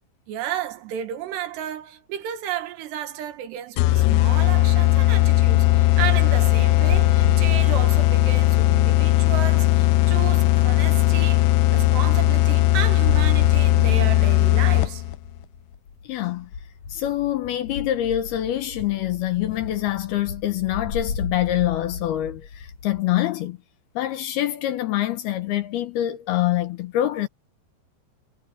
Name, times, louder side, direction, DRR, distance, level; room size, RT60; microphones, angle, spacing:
voice 1, 0.3-15.0, right 11 dB, 70° right, 3.5 m, -32 dB
sound 1, 3.8-15.2, left 15 dB, 90° left, 3.0 m, -18 dB
sound 2, 5.4-23.0, left 5 dB, 55° left, 2.4 m, -34 dB
voice 2, 16.0-16.5 16.9-23.6 24.0-27.3, left 13 dB, 70° left, 2.7 m, -25 dB
omnidirectional pair, 5.2 m